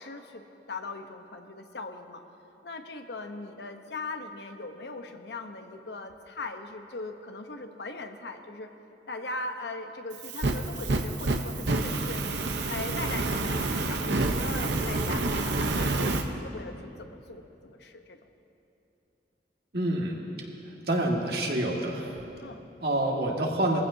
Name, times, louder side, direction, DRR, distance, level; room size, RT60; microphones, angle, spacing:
voice 1, 0.0-2.2 2.6-8.7 9.1-12.2 12.7-18.2 22.4-22.7, left 3 dB, 75° left, 6 dB, 0.9 m, -39 dB
Fire, 10.1-16.2, right 2 dB, 85° right, 0.9 m, -28 dB
voice 2, 19.7-20.2 20.6-22.1 22.8-23.8, right 1 dB, 60° right, -1 dB, 1.9 m, -27 dB
22.5 x 15.5 x 2.8 m, 2.8 s
head